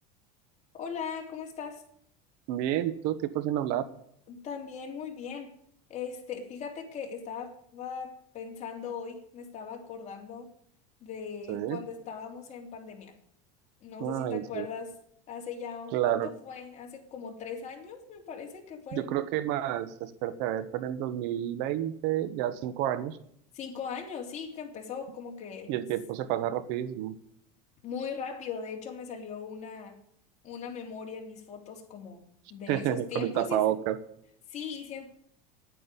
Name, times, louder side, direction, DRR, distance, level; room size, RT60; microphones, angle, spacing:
voice 1, 0.8-1.8 4.3-5.5 5.9-10.5 11.0-13.1 13.8-14.9 15.3-15.9 16.5-19.0 23.5-25.7 27.8-30.0 30.4-32.2 32.5-33.6 34.5-35.1, left 6 dB, 35° left, 1 dB, 3.3 m, -39 dB
voice 2, 2.5-3.9 11.5-11.8 14.0-14.7 15.9-16.3 18.9-23.2 25.7-27.1 32.7-34.0, right 12 dB, 60° right, 14 dB, 1.2 m, -30 dB
10.0 x 9.4 x 9.7 m, 0.70 s
supercardioid pair, 125°, 19 cm